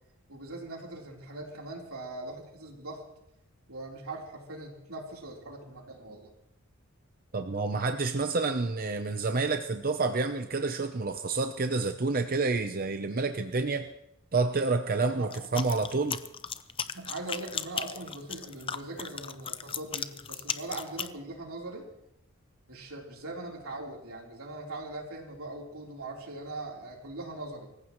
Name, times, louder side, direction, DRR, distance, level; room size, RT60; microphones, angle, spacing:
voice 1, 0.3-3.0 3.7-6.3 15.1-15.3 16.9-21.9 22.7-27.7, right 2 dB, 85° right, -1 dB, 3.6 m, -41 dB
voice 2, 7.3-13.9 14.3-16.2, right 3 dB, 40° right, 7 dB, 0.7 m, -29 dB
sound 1, 15.3-21.1, left 7 dB, 25° left, 0.6 m, -36 dB
24.5 x 15.0 x 3.1 m, 0.82 s
head